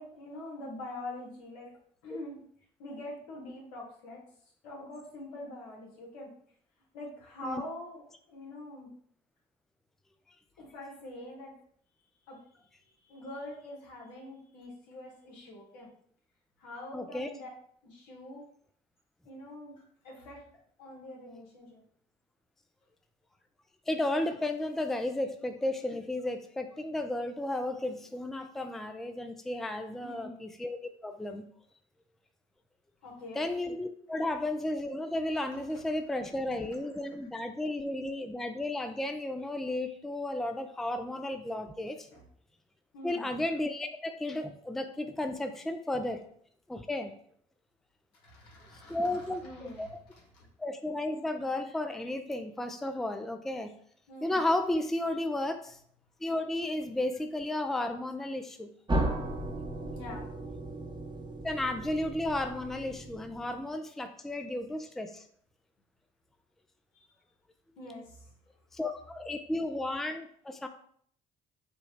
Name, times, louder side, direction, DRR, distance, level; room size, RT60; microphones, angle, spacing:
voice 1, 0.0-1.7 2.0-2.4 2.8-4.2 4.6-6.3 6.9-8.9 10.6-11.5 12.3-12.4 12.8-15.9 16.6-17.5 17.8-18.4 19.2-20.5 20.8-21.8 30.0-30.4 33.0-33.4 42.1-42.2 42.9-43.3 48.2-50.5 54.1-54.4 59.9-60.3 66.9-67.1 67.8-68.3, left 1 dB, 80° left, -2 dB, 1.3 m, -44 dB
voice 2, 16.9-17.3 23.9-30.8 31.0-31.5 33.4-42.1 43.0-46.2 46.7-47.1 48.9-49.4 49.8-49.9 50.6-53.7 54.2-55.8 56.2-58.7 61.4-65.2 68.7-70.7, left 1 dB, ahead, 7 dB, 0.4 m, -33 dB
sound 1, 58.9-63.6, right 1 dB, 20° right, 0.9 m, -35 dB
5.1 x 2.3 x 3.1 m, 0.62 s
hypercardioid pair, 55°, 21 cm